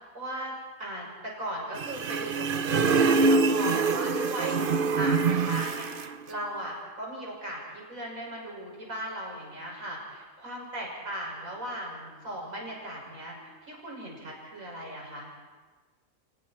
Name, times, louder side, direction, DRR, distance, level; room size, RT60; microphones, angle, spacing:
voice 1, 0.1-0.5 0.8-4.6 5.0-13.4 13.6-15.3, right 1 dB, 85° right, -2 dB, 6.7 m, -37 dB
sound 1, 1.8-6.1, right 4 dB, 45° right, 0.8 m, -25 dB
30.0 x 24.5 x 4.4 m, 1.3 s
omnidirectional pair, 1.4 m